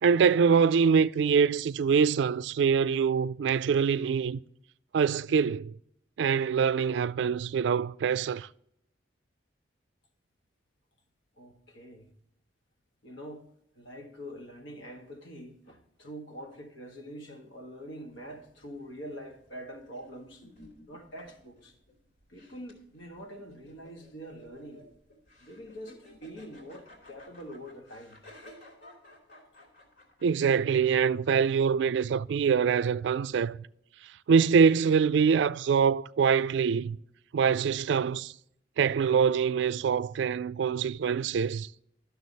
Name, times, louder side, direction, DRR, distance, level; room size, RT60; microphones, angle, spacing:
voice 1, 0.0-4.4 4.9-5.8 6.2-8.5 30.2-33.6 34.3-37.0 37.3-38.3 38.8-41.7, right 6 dB, 70° right, 0.3 m, -24 dB
voice 2, 11.4-12.1 13.0-13.5 13.7-20.5 20.9-21.8 22.3-24.8 25.4-28.3, equal, 90° left, 1.6 m, -45 dB
sound 1, 18.1-31.7, left 1 dB, 60° left, 2.6 m, -55 dB
12.0 x 6.8 x 4.1 m
head